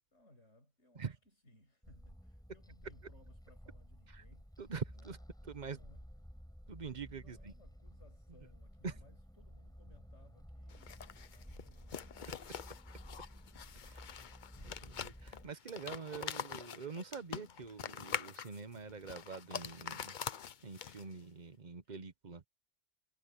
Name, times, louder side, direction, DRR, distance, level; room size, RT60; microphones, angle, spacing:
voice 1, 0.1-1.2 1.4-4.5 4.9-5.1 5.4-6.1 7.2-13.2 21.8-22.0, left 1 dB, 80° left, 8.5 m, -66 dB
sound 1, 1.8-15.5, equal, 5° left, 5.6 m, -54 dB
voice 2, 4.6-5.2 5.4-5.8 6.7-7.5 8.8-9.0 13.9-14.0 14.8-20.2 20.6-22.4, right 5 dB, 40° right, 1.1 m, -45 dB
sound 2, 10.7-21.2, left 8 dB, 50° left, 0.7 m, -45 dB
omnidirectional pair, 1.2 m